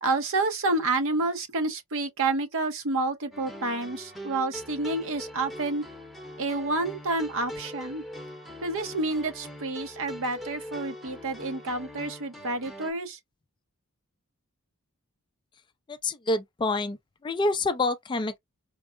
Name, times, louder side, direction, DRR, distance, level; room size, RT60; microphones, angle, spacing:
voice 1, 0.0-5.8 6.4-8.0 8.6-13.2, right 2 dB, 60° right, 0.8 m, -29 dB
sound 1, 3.3-12.9, equal, ahead, 0.7 m, -42 dB
voice 2, 15.9-18.4, left 2 dB, 20° left, 0.3 m, -27 dB
4.5 x 2.0 x 2.4 m
head